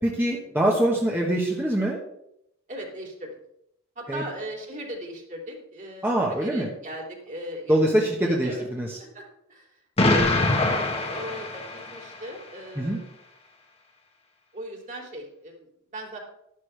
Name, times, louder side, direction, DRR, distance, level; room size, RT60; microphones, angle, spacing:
voice 1, 0.0-2.0 4.1-4.2 6.0-6.7 7.7-9.0 12.7-13.0, right 1 dB, 10° right, -2 dB, 1.3 m, -24 dB
voice 2, 2.7-3.3 3.9-8.7 9.0-9.2 9.5-9.7 10.0-13.0 14.5-16.2, right 1 dB, 40° right, 0 dB, 2.9 m, -38 dB
Explosion, 10.0-12.2, left 2 dB, 30° left, 1.3 m, -23 dB
12.0 x 11.5 x 3.4 m, 0.78 s
head